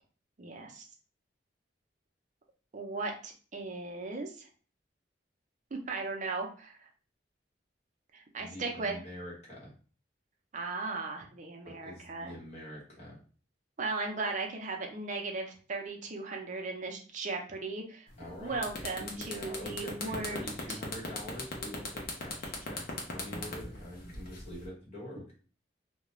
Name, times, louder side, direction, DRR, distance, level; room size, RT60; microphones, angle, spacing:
voice 1, 0.4-0.9 2.7-4.5 5.7-6.8 8.1-9.0 10.5-12.3 13.8-18.1 18.4-20.8, right 3 dB, 45° right, 2 dB, 0.6 m, -37 dB
voice 2, 8.4-9.7 11.6-13.2 18.2-18.6 19.0-25.3, left 1 dB, 35° left, -5 dB, 1.3 m, -45 dB
sound 1, 18.1-18.3 18.6-24.7, left 3 dB, 55° left, 0.7 m, -38 dB
2.4 x 2.2 x 3.0 m, 0.39 s
head